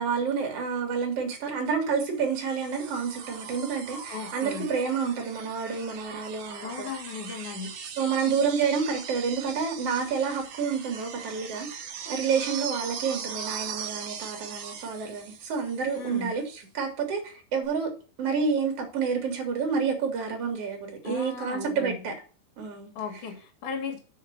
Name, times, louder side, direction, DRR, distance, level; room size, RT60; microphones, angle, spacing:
voice 1, 0.0-6.9 8.0-11.7 12.1-16.4 16.7-17.9 18.2-22.1 22.6-22.9, right 6 dB, 40° right, 2.9 m, -29 dB
sound 1, 2.2-16.2 17.6-17.7, right 7 dB, 60° right, 2.1 m, -40 dB
voice 2, 4.1-4.7 6.6-7.7 15.9-16.3 21.0-22.0 22.9-24.0, left 5 dB, 55° left, 3.3 m, -36 dB
6.4 x 6.4 x 7.5 m
omnidirectional pair, 4.8 m